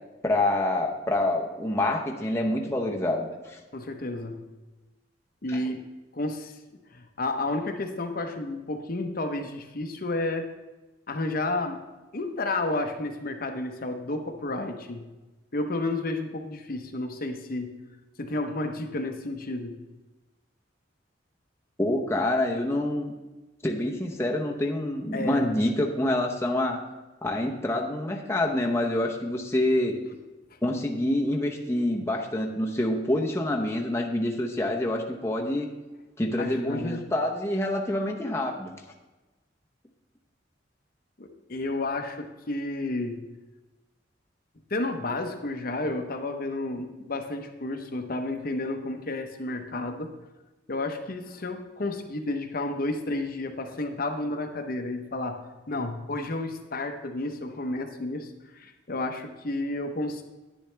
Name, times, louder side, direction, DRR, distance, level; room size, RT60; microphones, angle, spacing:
voice 1, 0.2-3.6 5.5-5.6 21.8-23.1 23.6-26.8 27.2-30.0 30.6-35.7 36.2-38.7, left 1 dB, 15° left, 0 dB, 0.8 m, -27 dB
voice 2, 3.7-4.4 5.4-5.8 6.1-6.5 6.9-10.5 11.1-11.8 12.1-15.1 15.5-17.7 18.2-19.8 25.1-25.5 36.4-37.0 41.2-43.2 44.7-50.1 50.7-55.4 55.7-60.2, left 2 dB, 50° left, 5 dB, 0.9 m, -31 dB
10.5 x 10.0 x 3.3 m, 1.1 s
head